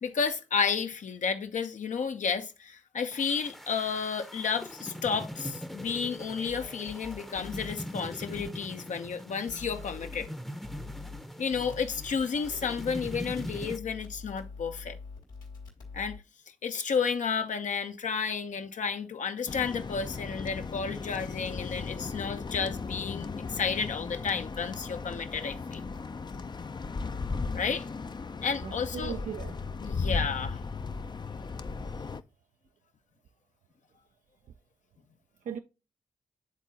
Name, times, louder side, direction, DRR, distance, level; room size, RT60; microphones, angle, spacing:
voice 1, 0.0-10.3 11.4-15.0 15.9-16.2 16.6-25.8 27.5-27.9 28.4-29.2 29.8-30.6, left 6 dB, 70° left, 0.8 m, -32 dB
sound 1, 3.1-13.8, equal, ahead, 0.7 m, -42 dB
sound 2, 6.5-7.7 8.3-8.5 9.5-10.3 10.6-11.2 11.5-16.2, left 4 dB, 90° left, 1.9 m, -44 dB
sound 3, 19.5-32.2, left 4 dB, 35° left, 0.4 m, -36 dB
voice 2, 28.6-29.6 35.4-35.6, right 7 dB, 75° right, 0.4 m, -38 dB
9.9 x 3.7 x 2.8 m
supercardioid pair, 45°, 13 cm